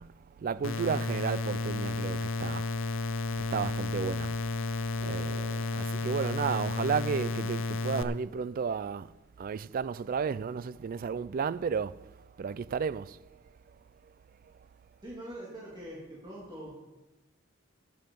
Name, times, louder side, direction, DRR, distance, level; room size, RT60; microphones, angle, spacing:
voice 1, 0.0-2.8 3.5-9.1 9.4-12.1 12.4-13.2, right 6 dB, 45° right, 0.3 m, -33 dB
sound 1, 0.6-8.0, left 3 dB, 70° left, 0.7 m, -32 dB
voice 2, 15.0-16.8, right 1 dB, 20° right, 2.6 m, -43 dB
12.0 x 9.8 x 5.3 m
head